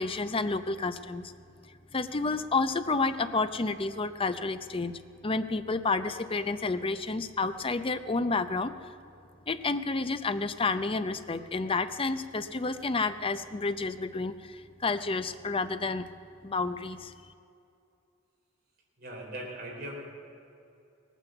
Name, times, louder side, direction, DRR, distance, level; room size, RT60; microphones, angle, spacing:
voice 1, 0.0-1.3 1.9-4.9 5.2-8.7 9.5-16.0 16.4-17.1, left 3 dB, 30° left, 11 dB, 0.6 m, -30 dB
voice 2, 19.0-19.9, right 1 dB, 55° right, -2 dB, 3.9 m, -39 dB
18.5 x 9.2 x 7.9 m, 2.6 s
head